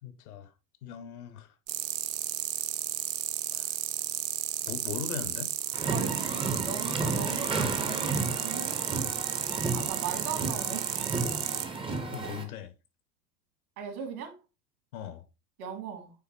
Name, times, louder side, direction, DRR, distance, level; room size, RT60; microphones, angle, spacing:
voice 1, 0.0-0.5 0.8-1.5 3.5-3.7 4.6-5.5 12.1-12.7 14.9-15.3, left 8 dB, 60° left, 1.1 m, -39 dB
sound 1, 1.7-11.7, right 12 dB, 30° right, 0.5 m, -33 dB
sound 2, 5.7-12.4, right 3 dB, 10° right, 0.9 m, -32 dB
voice 2, 5.9-8.8 9.5-10.9 12.2-12.3 13.8-14.4 15.6-16.1, right 7 dB, 60° right, 2.4 m, -39 dB
9.0 x 3.8 x 2.9 m
figure-of-eight pair, 85°, 50 cm